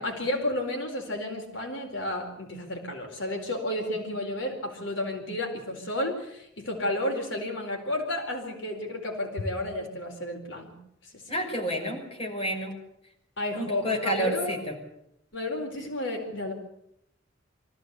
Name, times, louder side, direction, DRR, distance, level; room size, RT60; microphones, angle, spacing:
voice 1, 0.0-10.7 11.1-11.2 13.4-14.6 15.3-16.5, left 1 dB, 85° left, 3 dB, 4.4 m, -32 dB
voice 2, 11.3-12.8 13.6-14.8, equal, 30° left, 0 dB, 5.8 m, -30 dB
24.5 x 15.0 x 8.3 m, 0.77 s
head